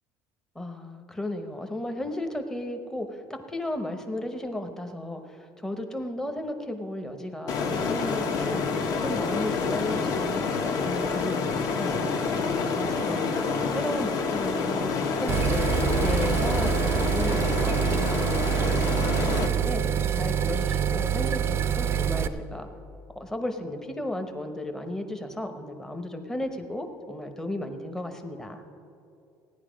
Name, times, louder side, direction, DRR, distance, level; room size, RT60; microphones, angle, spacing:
voice 1, 0.5-12.3 12.8-19.8 20.1-22.7 23.2-28.6, left 1 dB, 5° left, 5 dB, 0.8 m, -34 dB
sound 1, 7.5-19.5, left 5 dB, 50° left, 1.2 m, -28 dB
sound 2, 15.3-22.3, right 8 dB, 30° right, 0.5 m, -26 dB
16.0 x 9.9 x 5.0 m, 2.6 s
cardioid pair, 155°, 8 cm